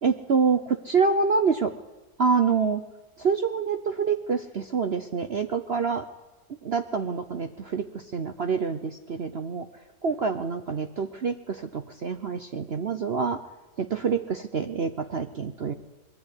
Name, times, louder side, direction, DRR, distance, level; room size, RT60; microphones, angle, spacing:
voice 1, 0.0-1.7 2.2-2.8 3.2-6.0 6.6-9.7 10.0-13.4 13.8-15.7, right 5 dB, 50° right, 8 dB, 0.8 m, -26 dB
21.5 x 13.5 x 9.8 m, 1.1 s
omnidirectional pair, 1.8 m